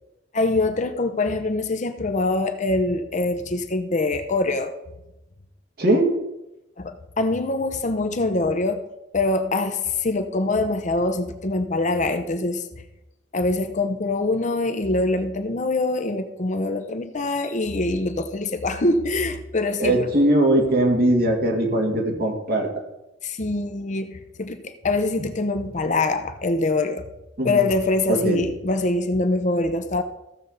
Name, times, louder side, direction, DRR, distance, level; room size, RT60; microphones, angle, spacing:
voice 1, 0.3-4.7 6.8-8.8 9.1-12.6 13.3-20.1 23.2-27.1 27.4-30.0, left 2 dB, 40° left, 8 dB, 0.8 m, -24 dB
voice 2, 5.8-6.2 19.8-22.7 27.4-27.6 28.1-28.4, right 1 dB, 55° right, 1 dB, 2.2 m, -20 dB
15.0 x 6.9 x 4.0 m, 0.94 s
head